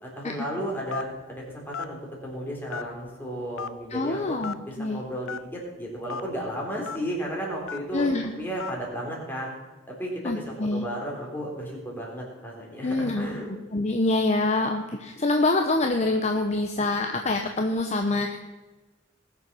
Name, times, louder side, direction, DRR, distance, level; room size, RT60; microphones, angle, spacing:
voice 1, 0.0-4.4 4.7-9.5 9.9-10.4 10.7-13.5, equal, 10° left, -3 dB, 3.7 m, -34 dB
Telephone, 0.9-1.2 1.7-1.9 2.7-3.1 3.6-3.7 4.4-4.6 5.3-5.4 6.1-6.2 6.9-7.0 7.7-7.9 8.6-8.8, left 6 dB, 90° left, 0.6 m, -34 dB
voice 2, 3.9-5.0 7.9-8.3 10.2-10.8 12.8-13.4 13.7-18.4, left 2 dB, 35° left, 4 dB, 0.8 m, -25 dB
20.0 x 7.0 x 6.1 m, 1.2 s
head